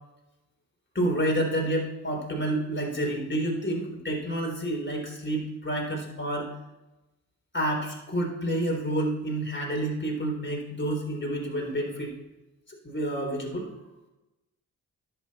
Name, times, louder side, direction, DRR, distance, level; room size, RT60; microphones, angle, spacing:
voice 1, 0.9-6.5 7.5-12.1 12.8-13.7, right 1 dB, 30° left, 0 dB, 3.8 m, -29 dB
10.5 x 8.7 x 4.3 m, 1.0 s
supercardioid pair, 40°, 40 cm